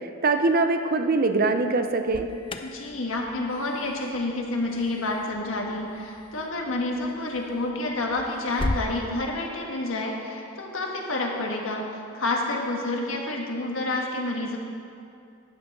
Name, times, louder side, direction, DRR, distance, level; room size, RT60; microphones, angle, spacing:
voice 1, 0.2-2.3, right 3 dB, 45° right, 7 dB, 0.6 m, -22 dB
Alarm, 1.8-8.9, left 2 dB, 25° left, 0.5 m, -38 dB
voice 2, 2.6-11.8 12.1-14.6, left 2 dB, 80° left, 0 dB, 1.6 m, -29 dB
11.0 x 8.2 x 5.4 m, 2.5 s
head